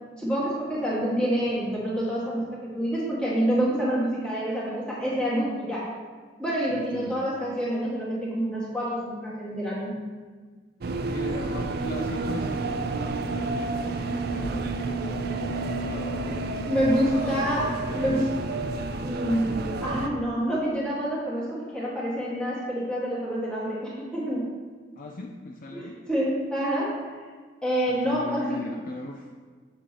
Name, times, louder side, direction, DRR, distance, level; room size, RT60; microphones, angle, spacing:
voice 1, 0.2-5.8 6.4-9.9 16.7-17.7 17.9-18.2 19.0-24.5 25.7-27.2 27.6-28.6, equal, 5° left, -7 dB, 1.8 m, -27 dB
voice 2, 6.7-7.3 11.1-16.5 17.0-18.3 25.0-26.0 27.9-29.3, left 2 dB, 40° left, 0 dB, 0.4 m, -38 dB
sound 1, 10.8-20.1, right 3 dB, 50° right, 0.4 m, -30 dB
7.0 x 7.0 x 3.0 m, 1.5 s
head